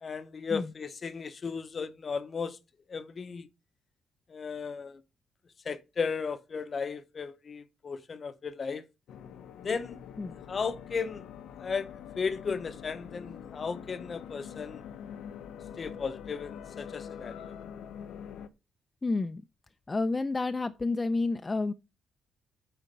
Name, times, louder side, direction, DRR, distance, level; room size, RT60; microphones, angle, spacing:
voice 1, 0.0-2.6 2.9-3.5 4.3-5.0 5.6-8.8 9.6-10.0 10.5-11.2 11.6-14.8 15.8-17.5, left 5 dB, 40° left, 0.9 m, -35 dB
sound 1, 9.1-18.5, left 8 dB, 80° left, 0.9 m, -45 dB
voice 2, 19.0-19.4 19.9-21.7, left 3 dB, 25° left, 0.6 m, -30 dB
9.1 x 4.4 x 6.7 m
cardioid pair, 100°, 0 cm